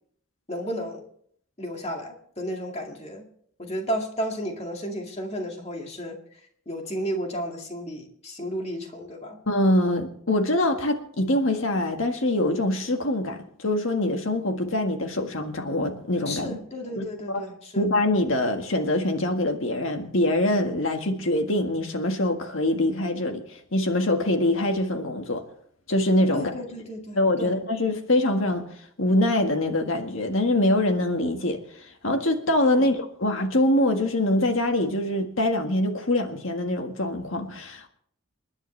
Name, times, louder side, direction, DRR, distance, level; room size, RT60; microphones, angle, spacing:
voice 1, 0.5-1.0 1.6-3.3 3.6-6.2 6.7-9.4 16.3-17.9 26.3-27.5 32.8-32.9, equal, 30° left, 2.2 m, -33 dB
voice 2, 9.5-16.6 17.0-17.4 17.7-25.4 25.9-26.5 27.1-28.7 29.0-37.9, left 1 dB, 80° left, 1.7 m, -24 dB
28.5 x 11.0 x 3.3 m
head